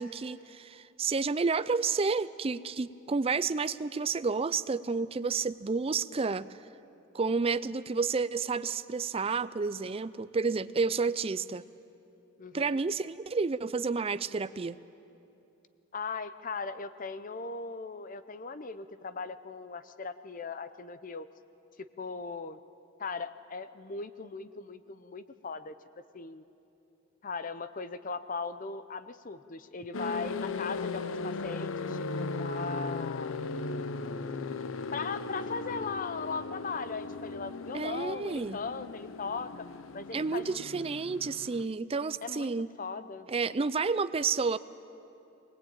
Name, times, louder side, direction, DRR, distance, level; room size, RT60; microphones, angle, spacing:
voice 1, 0.0-6.6 7.1-11.6 12.5-14.8 37.7-38.6 40.1-42.7 43.3-44.6, right 4 dB, 30° right, 15 dB, 0.4 m, -30 dB
voice 2, 12.4-12.8 15.9-21.3 22.0-22.6 23.0-25.7 26.1-26.4 27.2-33.4 34.9-39.7 39.9-40.7 42.2-43.3, left 4 dB, 40° left, 12 dB, 0.7 m, -38 dB
sound 1, 29.9-41.7, left 3 dB, 80° left, 0.7 m, -37 dB
21.5 x 19.0 x 8.8 m, 2.8 s
head